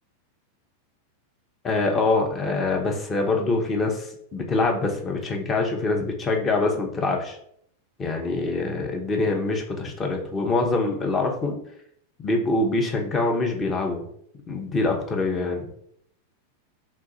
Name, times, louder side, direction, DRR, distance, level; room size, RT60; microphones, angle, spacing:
voice 1, 1.6-7.4 8.0-11.5 12.2-14.0 14.5-15.7, left 3 dB, 20° left, 1 dB, 0.8 m, -24 dB
3.1 x 2.4 x 4.0 m, 0.68 s
figure-of-eight pair, 90°, 0 cm